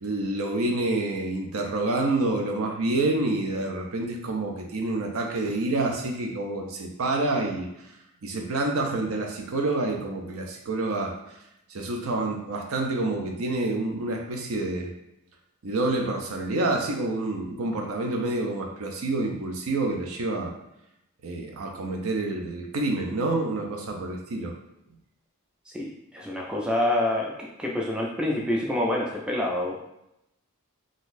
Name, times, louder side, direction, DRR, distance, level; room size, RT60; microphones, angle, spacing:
voice 1, 0.0-7.9 8.2-11.1 11.7-14.9 15.6-20.5 21.2-24.6, right 2 dB, 70° right, 2 dB, 0.6 m, -28 dB
voice 2, 25.7-27.3 27.6-29.8, left 1 dB, 5° right, -2 dB, 0.3 m, -27 dB
3.8 x 2.4 x 2.6 m, 0.85 s
head